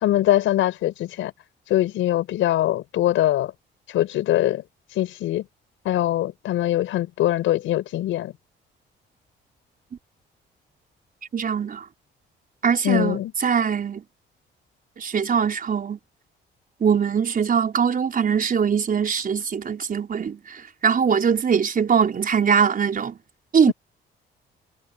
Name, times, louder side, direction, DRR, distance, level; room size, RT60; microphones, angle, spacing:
voice 1, 0.0-1.3 1.7-3.5 3.9-4.6 5.0-5.4 5.9-8.3 12.8-13.3 23.7-23.8, left 13 dB, 85° left, 5.1 m, -22 dB
voice 2, 11.3-11.9 12.6-14.0 15.0-16.0 16.8-23.2 23.5-23.7, right 7 dB, 45° right, 5.1 m, -22 dB
cardioid pair, 90°, 20 cm